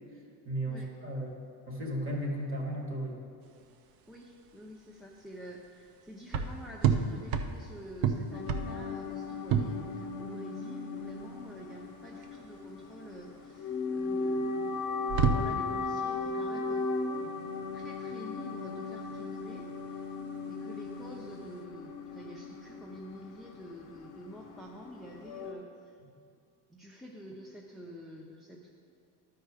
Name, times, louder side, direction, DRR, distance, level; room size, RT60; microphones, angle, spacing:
voice 1, 0.5-1.3 1.7-3.2, right 1 dB, 30° right, 0 dB, 1.7 m, -34 dB
sound 1, 3.4-21.6, right 6 dB, 55° right, 0.7 m, -34 dB
voice 2, 4.1-14.9 15.1-16.9 17.1-17.3 17.7-20.1 20.5-26.0 26.7-28.7, equal, ahead, -2 dB, 0.5 m, -48 dB
sound 2, 8.3-25.5, left 3 dB, 45° left, 1.0 m, -37 dB
12.0 x 4.6 x 4.9 m, 2.3 s
cardioid pair, 120°, 43 cm